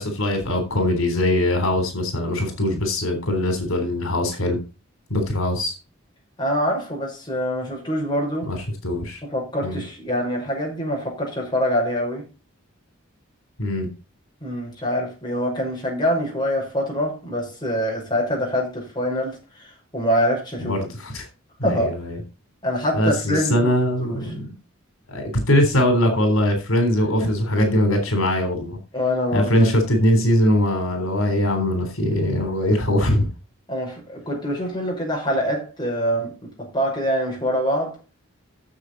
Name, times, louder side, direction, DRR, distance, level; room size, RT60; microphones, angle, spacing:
voice 1, 0.0-4.6 5.1-5.8 8.5-9.2 9.6-9.8 13.6-13.9 20.6-21.3 21.6-22.2 22.9-24.4 25.1-28.8 29.3-33.3, left 1 dB, 85° left, 3.7 m, -21 dB
voice 2, 6.4-8.5 9.2-12.3 14.4-20.8 21.6-21.9 22.6-23.7 24.0-24.3 27.2-27.4 28.9-29.7 33.7-38.0, equal, 20° left, 5.8 m, -25 dB
13.0 x 7.4 x 4.1 m
head